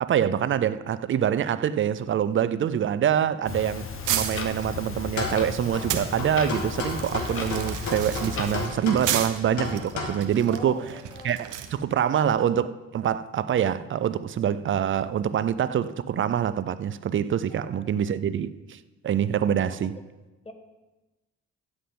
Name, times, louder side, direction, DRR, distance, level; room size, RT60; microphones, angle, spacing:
voice 1, 0.0-10.8 11.2-18.8 19.0-20.0, right 9 dB, 40° right, 0.4 m, -25 dB
Clock, 3.4-8.7, left 4 dB, 45° left, 1.0 m, -35 dB
sound 1, 4.0-6.1 6.6-11.7, right 10 dB, 85° right, 0.8 m, -33 dB
sound 2, 5.1-10.1, left 3 dB, 70° left, 1.7 m, -33 dB
voice 2, 10.4-11.4 12.0-12.3 17.5-17.9 19.6-19.8 20.4-20.5, left 2 dB, 20° left, 1.2 m, -43 dB
10.0 x 8.0 x 3.8 m
cardioid pair, 90°, 30 cm